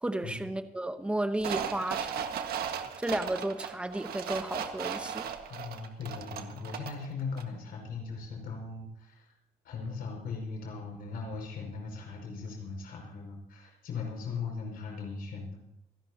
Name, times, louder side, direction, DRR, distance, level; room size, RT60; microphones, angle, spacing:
voice 1, 0.0-2.4 3.0-5.3, right 1 dB, 5° right, 9 dB, 1.0 m, -33 dB
sound 1, 1.4-7.1 7.4-7.5, right 8 dB, 75° right, 1.6 m, -36 dB
voice 2, 5.5-9.3 9.6-15.6, left 4 dB, 70° left, 1 dB, 5.7 m, -39 dB
27.0 x 11.5 x 2.9 m, 0.83 s
cardioid pair, 170°, 16 cm